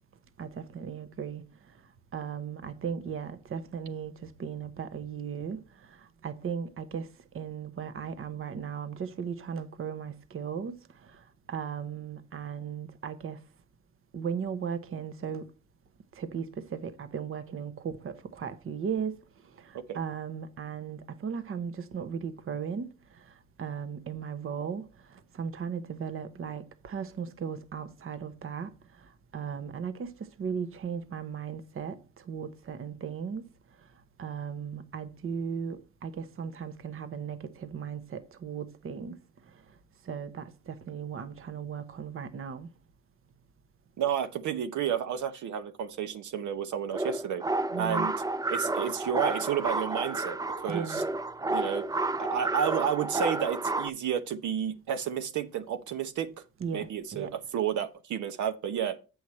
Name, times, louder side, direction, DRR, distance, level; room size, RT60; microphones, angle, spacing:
voice 1, 0.4-1.4 2.1-5.6 5.9-7.1 7.3-10.8 11.1-11.2 11.5-13.4 14.1-15.5 16.2-19.1 19.6-22.9 23.6-28.7 29.3-32.0 32.3-33.4 34.2-39.2 40.1-42.7 47.7-48.1 50.7-51.0 56.6-57.3, right 7 dB, 45° right, 0.9 m, -36 dB
voice 2, 44.0-47.4 47.8-48.1 48.5-51.0 51.5-51.9 52.2-56.3 56.7-59.0, right 8 dB, 75° right, 1.0 m, -31 dB
sound 1, 46.9-53.9, right 2 dB, 10° right, 0.4 m, -31 dB
8.0 x 6.4 x 4.3 m
cardioid pair, 90°, 30 cm